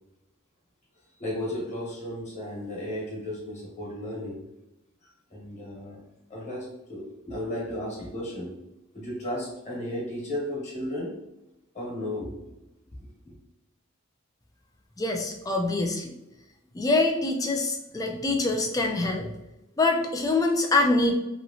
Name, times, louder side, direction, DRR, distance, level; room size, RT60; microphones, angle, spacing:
voice 1, 1.2-4.4 5.0-6.0 6.3-8.5 8.9-11.1 11.7-12.4 13.2-13.3, left 1 dB, 30° left, -5 dB, 1.2 m, -34 dB
voice 2, 15.0-16.1 16.7-19.3 19.8-21.1, left 2 dB, 15° left, 3 dB, 0.3 m, -25 dB
3.0 x 2.8 x 2.6 m, 0.91 s
head